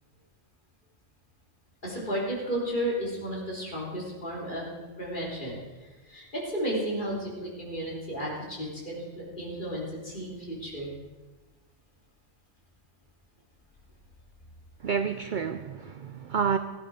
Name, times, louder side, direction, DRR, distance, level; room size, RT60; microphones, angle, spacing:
voice 1, 1.8-4.7 5.0-5.6 5.8-10.9, equal, 35° left, -4 dB, 3.8 m, -33 dB
voice 2, 14.8-16.6, right 6 dB, 55° right, 10 dB, 0.5 m, -29 dB
15.5 x 11.0 x 5.0 m, 1.2 s
omnidirectional pair, 1.4 m